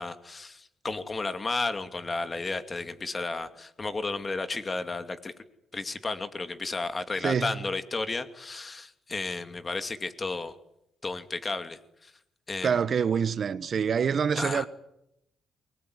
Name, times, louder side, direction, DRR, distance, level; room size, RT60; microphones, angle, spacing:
voice 1, 0.0-5.3 5.7-10.5 11.0-12.1 12.5-12.8 14.4-14.7, left 3 dB, 30° left, 2.5 m, -33 dB
voice 2, 7.2-7.6 12.6-14.7, right 7 dB, 50° right, 1.4 m, -26 dB
24.0 x 21.0 x 9.7 m
cardioid pair, 90°, 0 cm